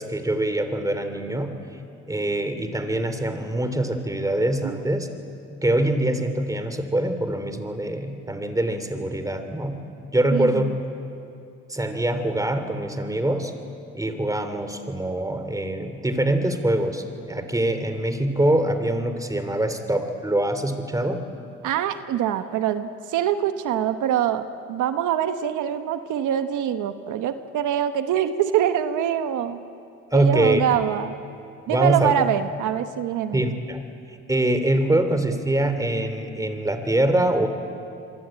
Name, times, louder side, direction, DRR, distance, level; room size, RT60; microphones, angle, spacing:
voice 1, 0.0-1.5 2.1-5.1 5.6-9.7 10.1-10.7 11.7-13.5 13.9-21.2 30.1-30.6 31.7-32.1 33.3-33.8 34.3-37.5, right 1 dB, 10° right, 9 dB, 3.0 m, -24 dB
voice 2, 10.3-10.7 21.6-29.6 30.1-31.1 31.7-33.4, right 10 dB, 85° right, 9 dB, 1.2 m, -24 dB
27.0 x 23.5 x 8.9 m, 2.5 s
cardioid pair, 90°, 30 cm